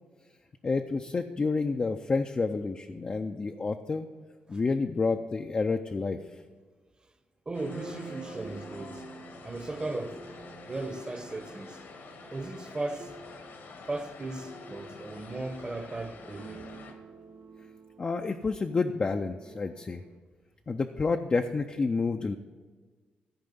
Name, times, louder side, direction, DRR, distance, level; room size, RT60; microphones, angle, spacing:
voice 1, 0.6-4.1 4.5-6.2 18.0-20.0 20.7-22.4, left 4 dB, 30° left, 0.4 m, -29 dB
sound 1, 7.5-16.9, left 4 dB, 70° left, 1.3 m, -48 dB
voice 2, 7.5-9.0 9.4-10.2 10.7-11.8 12.3-13.1 13.9-16.6, right 2 dB, 25° right, 0.9 m, -36 dB
sound 2, 7.6-20.2, right 4 dB, 60° right, 0.8 m, -49 dB
14.0 x 4.8 x 5.4 m
cardioid pair, 105°, 4 cm